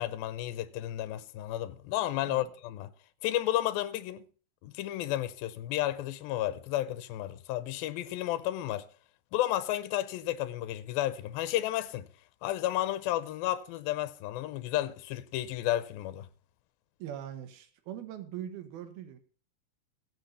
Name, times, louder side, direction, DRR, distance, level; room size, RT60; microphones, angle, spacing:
voice 1, 0.0-2.9 3.2-4.2 4.6-8.9 9.3-12.1 12.4-16.3, left 14 dB, 85° left, 2.5 m, -32 dB
voice 2, 17.0-19.2, right 10 dB, 90° right, 3.2 m, -41 dB
16.0 x 6.5 x 5.5 m
omnidirectional pair, 4.2 m